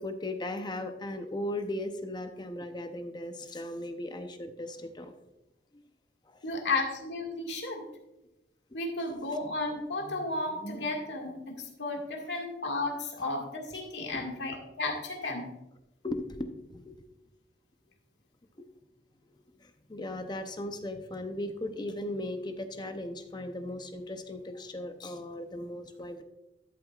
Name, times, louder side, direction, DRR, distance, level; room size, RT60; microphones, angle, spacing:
voice 1, 0.0-5.1 5.7-5.8 6.3-6.4 8.7-8.8 14.1-14.3 16.0-17.1 18.6-18.7 19.6-26.2, left 1 dB, 25° left, 7 dB, 0.7 m, -37 dB
voice 2, 6.4-7.9 8.7-15.5, left 2 dB, 75° left, 1 dB, 1.9 m, -33 dB
12.5 x 7.9 x 2.4 m, 0.91 s
head